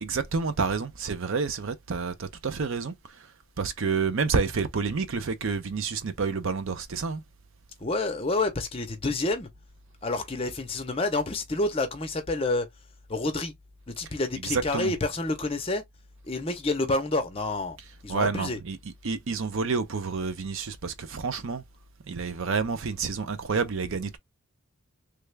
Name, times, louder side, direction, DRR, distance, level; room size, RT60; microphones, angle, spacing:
voice 1, 0.0-2.9 3.6-7.2 14.4-14.9 18.1-21.6 22.1-24.2, right 4 dB, 60° right, 0.6 m, -29 dB
voice 2, 7.8-9.5 10.0-12.7 13.1-13.5 13.9-15.8 16.3-17.8 18.0-18.6, left 2 dB, 25° left, 0.7 m, -28 dB
3.3 x 2.3 x 3.2 m
head